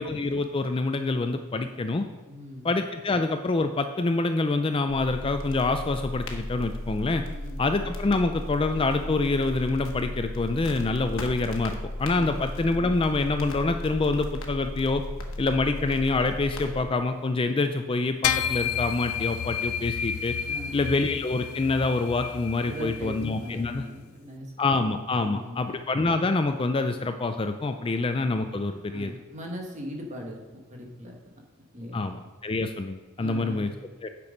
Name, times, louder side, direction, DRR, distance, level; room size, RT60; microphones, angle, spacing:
voice 1, 0.0-2.1 2.6-7.2 7.6-15.0 15.4-20.4 20.7-23.8 24.6-29.1 31.9-33.7 34.0-34.1, left 3 dB, 25° left, 8 dB, 0.4 m, -26 dB
voice 2, 2.3-2.7 7.2-7.6 12.1-12.4 20.5-20.9 22.6-24.5 25.1-25.8 27.9-28.0 28.9-30.4 30.7-31.1 31.6-32.1 33.2-33.7, equal, 35° right, 0 dB, 1.6 m, -39 dB
sound 1, 4.9-16.8, left 1 dB, 60° left, 1.2 m, -35 dB
sound 2, 18.2-23.9, left 8 dB, 90° left, 0.4 m, -31 dB
8.9 x 6.1 x 5.1 m, 1.3 s
head